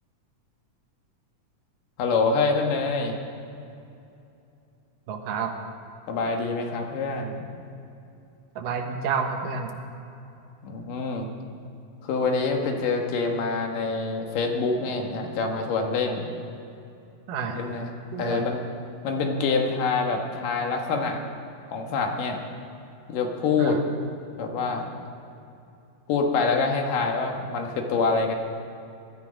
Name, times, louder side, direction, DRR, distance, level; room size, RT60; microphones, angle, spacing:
voice 1, 2.0-3.2 6.1-7.4 10.6-11.3 12.0-16.3 17.5-17.9 18.2-18.5 19.0-21.2 21.7-22.4 23.1-23.8 24.4-24.9 26.1-28.4, left 4 dB, 90° left, 2 dB, 3.1 m, -26 dB
voice 2, 5.1-5.6 8.6-9.7 17.3-17.6 18.1-18.5 23.6-23.8, right 5 dB, 85° right, 4 dB, 2.9 m, -29 dB
21.5 x 13.0 x 5.1 m, 2.7 s
omnidirectional pair, 3.7 m